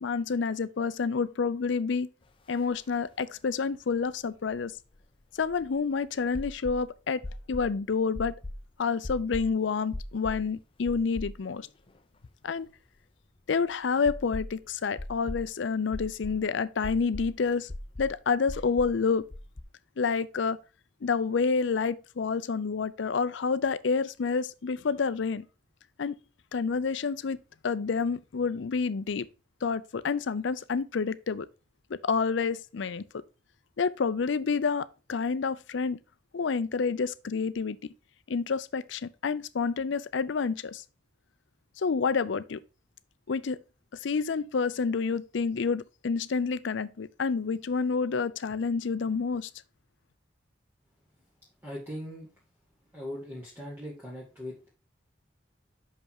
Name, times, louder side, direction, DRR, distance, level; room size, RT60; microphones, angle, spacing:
voice 1, 0.0-2.1 2.5-4.7 5.4-7.2 7.5-8.3 8.8-11.7 12.4-12.7 13.5-17.7 18.0-19.2 20.0-20.6 21.0-25.5 26.0-26.1 26.5-27.4 27.6-29.3 29.6-31.5 31.9-33.0 33.8-36.0 36.3-37.8 38.3-40.8 41.8-42.6 43.3-43.6 44.0-49.5, left 5 dB, 70° left, 0.5 m, -28 dB
sound 1, 2.6-2.7 2.9-3.0 4.5-5.8 6.3-6.8 7.2-7.7 8.2-8.6 9.0-9.5 9.9-10.4 10.9-11.6 12.0-12.1 14.1-14.6 15.0-15.5 15.9-16.4 16.8-17.3 17.7-18.1 18.5-18.9 19.3-19.6, left 1 dB, 30° left, 0.6 m, -38 dB
voice 2, 51.6-52.3 52.9-54.7, equal, 10° right, 2.0 m, -40 dB
6.0 x 5.4 x 4.4 m
head